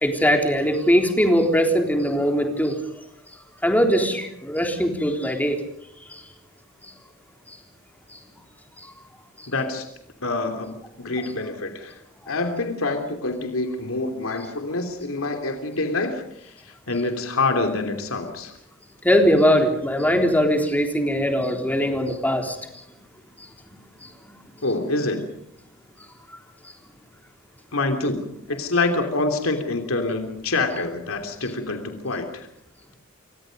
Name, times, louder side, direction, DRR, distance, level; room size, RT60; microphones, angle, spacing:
voice 1, 0.0-2.8 3.6-5.6 6.1-6.2 19.0-22.6 24.0-24.1, equal, 10° left, 3 dB, 3.6 m, -20 dB
voice 2, 9.5-9.9 10.2-12.0 12.3-18.5 24.6-25.3 27.7-28.2 28.5-32.5, left 3 dB, 80° left, 5 dB, 3.1 m, -26 dB
29.0 x 24.5 x 5.3 m, 0.73 s
head